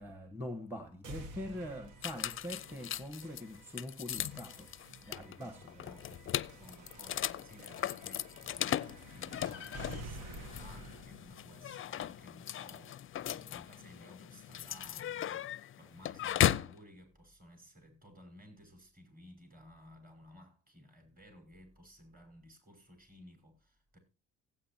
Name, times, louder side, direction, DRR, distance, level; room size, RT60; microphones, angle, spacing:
voice 1, 0.0-4.7 5.1-6.2, left 1 dB, 5° right, 1.3 m, -44 dB
sound 1, 1.0-13.0, right 1 dB, 90° right, 1.4 m, -51 dB
sound 2, 2.0-16.8, left 11 dB, 45° left, 0.4 m, -37 dB
voice 2, 5.4-6.1 6.5-24.0, equal, 30° right, 5.8 m, -57 dB
16.5 x 8.9 x 2.8 m
cardioid pair, 90°, 30 cm